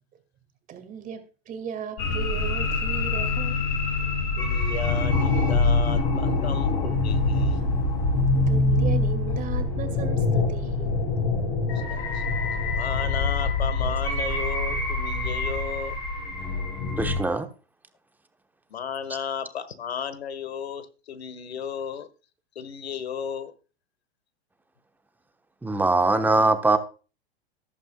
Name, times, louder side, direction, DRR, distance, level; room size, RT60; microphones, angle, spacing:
voice 1, 0.7-3.6 8.5-10.9, right 8 dB, 25° right, 7 dB, 2.2 m, -36 dB
sound 1, 2.0-17.2, left 3 dB, 50° left, 5.5 m, -25 dB
voice 2, 4.4-7.6 11.7-12.2 12.7-16.0 18.7-22.1 22.5-23.5, left 7 dB, 85° left, 13 dB, 1.5 m, -34 dB
voice 3, 17.0-17.5 25.6-26.8, right 2 dB, 5° right, 8 dB, 1.1 m, -21 dB
14.5 x 11.0 x 2.3 m, 0.33 s
hypercardioid pair, 120°, 31 cm